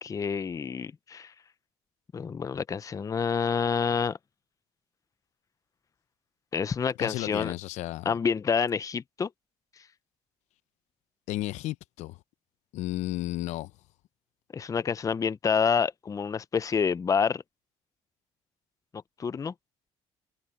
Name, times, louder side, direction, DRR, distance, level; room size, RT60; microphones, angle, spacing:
voice 1, 0.0-1.3 2.1-4.2 6.5-7.5 8.0-9.3 14.5-17.4 19.2-19.5, left 6 dB, 30° left, 0.6 m, -28 dB
voice 2, 7.0-8.2 11.3-12.2 12.7-13.7, left 16 dB, 85° left, 0.7 m, -33 dB
cardioid pair, 100°, 12 cm